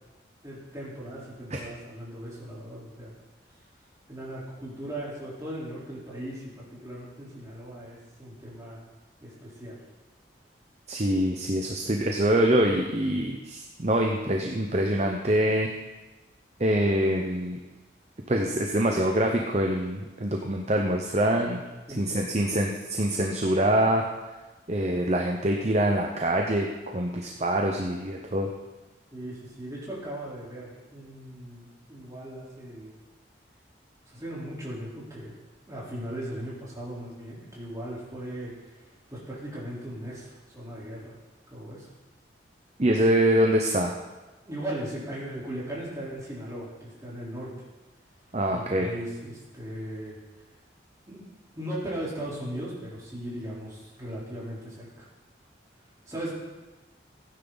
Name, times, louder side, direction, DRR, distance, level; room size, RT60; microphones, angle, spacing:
voice 1, 0.4-3.1 4.1-8.8 9.2-9.8 21.9-22.6 29.1-32.9 34.1-35.3 35.7-38.7 39.1-41.1 41.5-41.9 44.5-47.5 48.5-50.2 51.1-55.1 56.1-56.3, right 1 dB, 20° right, -7 dB, 3.8 m, -38 dB
voice 2, 10.9-15.7 16.6-17.6 18.3-21.6 22.0-24.0 24.7-26.7 26.9-28.5 42.8-43.9 48.3-48.9, right 1 dB, 35° right, 1 dB, 0.8 m, -24 dB
16.0 x 9.6 x 4.0 m, 1.1 s
head